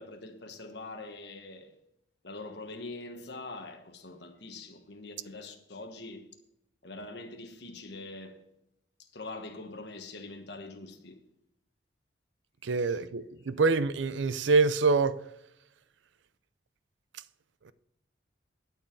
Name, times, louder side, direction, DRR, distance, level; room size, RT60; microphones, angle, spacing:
voice 1, 0.0-1.8 2.2-6.2 6.8-8.4 9.1-11.2 12.9-13.0, left 2 dB, 65° left, 1.3 m, -43 dB
voice 2, 12.6-15.2, right 4 dB, 80° right, 0.5 m, -25 dB
12.0 x 4.6 x 7.1 m
head